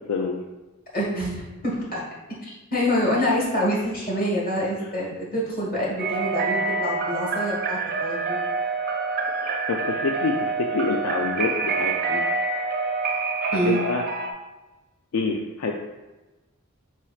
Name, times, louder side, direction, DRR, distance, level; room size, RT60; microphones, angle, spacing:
voice 1, 0.9-2.0 2.4-8.4 13.5-13.8, equal, 45° left, -5 dB, 1.4 m, -26 dB
sound 1, 6.0-14.3, right 4 dB, 45° right, 0.4 m, -27 dB
voice 2, 9.4-12.2 13.7-14.0 15.1-15.7, left 4 dB, 80° left, 2 dB, 0.4 m, -27 dB
4.4 x 4.1 x 2.3 m, 1.1 s
head